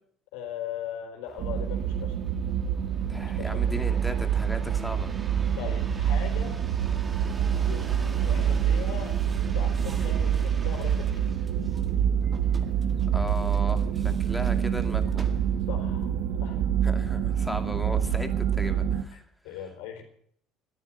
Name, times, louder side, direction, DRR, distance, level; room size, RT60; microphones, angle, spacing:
voice 1, 0.3-2.2 3.2-3.7 5.6-6.6 7.5-9.2 9.5-11.3 15.7-16.1 16.4-16.7 19.4-20.0, left 9 dB, 85° left, 4 dB, 4.2 m, -39 dB
sound 1, 1.3-15.8 16.4-16.9, right 3 dB, 25° right, 1.8 m, -46 dB
sound 2, 1.4-19.0, right 8 dB, 65° right, 1.1 m, -26 dB
voice 2, 3.1-5.1 13.1-15.3 16.8-19.6, equal, ahead, 5 dB, 2.3 m, -36 dB
13.5 x 9.8 x 9.0 m, 0.65 s
supercardioid pair, 105°, 0 cm